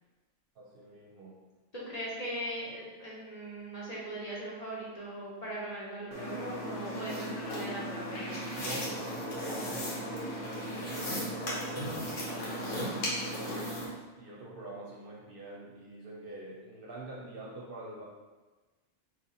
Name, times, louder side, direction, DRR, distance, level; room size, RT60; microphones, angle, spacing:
voice 1, 0.6-1.4 8.6-13.5 14.2-18.0, right 2 dB, 55° right, -3 dB, 0.7 m, -45 dB
voice 2, 1.7-8.4, right 1 dB, 35° left, -7 dB, 0.8 m, -39 dB
sound 1, 6.1-13.9, equal, 85° left, 1.3 m, -36 dB
3.0 x 2.8 x 3.9 m, 1.3 s
omnidirectional pair, 1.2 m